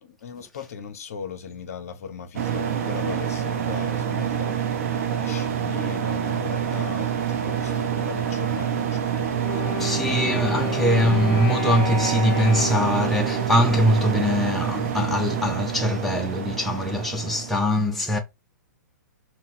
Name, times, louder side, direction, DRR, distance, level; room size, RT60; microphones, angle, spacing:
voice 1, 0.0-4.6 5.1-9.9 10.5-11.5, left 6 dB, 50° left, 0.6 m, -38 dB
sound 1, 2.4-17.5, right 8 dB, 45° right, 0.6 m, -27 dB
Wind instrument woodwind instrument, 9.4-14.5, left 3 dB, 25° left, 1.3 m, -33 dB
voice 2, 9.8-18.2, left 1 dB, ahead, 0.4 m, -22 dB
3.9 x 2.1 x 2.6 m
figure-of-eight pair, 115°, 10 cm